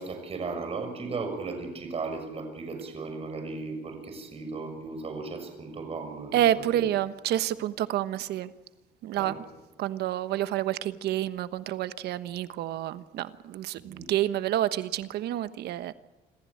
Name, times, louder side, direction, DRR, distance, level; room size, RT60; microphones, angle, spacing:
voice 1, 0.0-6.4 6.7-6.9 9.1-9.4 13.7-14.1, right 4 dB, 35° right, 6 dB, 6.5 m, -36 dB
voice 2, 6.3-8.5 9.0-9.4 9.8-15.9, right 12 dB, 75° right, 13 dB, 1.2 m, -28 dB
27.0 x 15.0 x 8.8 m, 1.1 s
cardioid pair, 110°, 17 cm